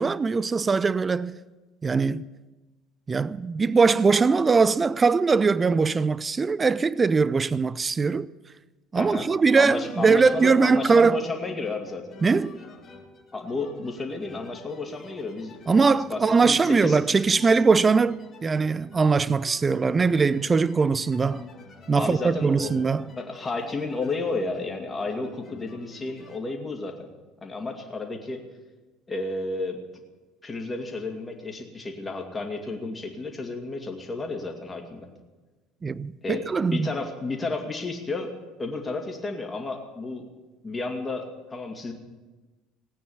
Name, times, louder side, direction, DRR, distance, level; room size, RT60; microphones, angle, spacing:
voice 1, 0.0-1.4 1.8-2.2 3.1-8.3 8.9-11.2 12.2-12.6 15.7-21.5 21.9-23.0 35.8-36.9, right 4 dB, 25° right, 0.4 m, -21 dB
voice 2, 9.0-9.3 9.6-12.1 13.3-15.6 16.1-17.0 17.3-17.5 21.9-22.7 23.2-27.1 27.4-28.4 29.1-29.8 30.4-35.1 36.2-36.5 36.7-38.3 38.6-40.3 40.6-41.9, left 3 dB, 20° left, 2.6 m, -32 dB
sound 1, 9.8-26.4, left 3 dB, 35° left, 1.9 m, -48 dB
17.5 x 9.1 x 7.2 m
figure-of-eight pair, 60°, 0 cm